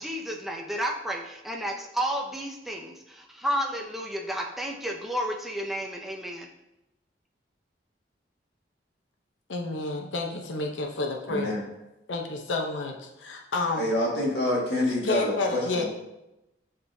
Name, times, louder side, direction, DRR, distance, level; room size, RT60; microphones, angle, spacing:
voice 1, 0.0-6.5, equal, ahead, 0 dB, 0.5 m, -32 dB
voice 2, 9.5-11.6 12.1-13.8 15.0-15.8, left 3 dB, 90° left, 2 dB, 0.7 m, -30 dB
voice 3, 11.3-11.6 13.8-15.8, left 1 dB, 65° left, -4 dB, 1.9 m, -27 dB
9.5 x 3.7 x 2.7 m, 0.93 s
head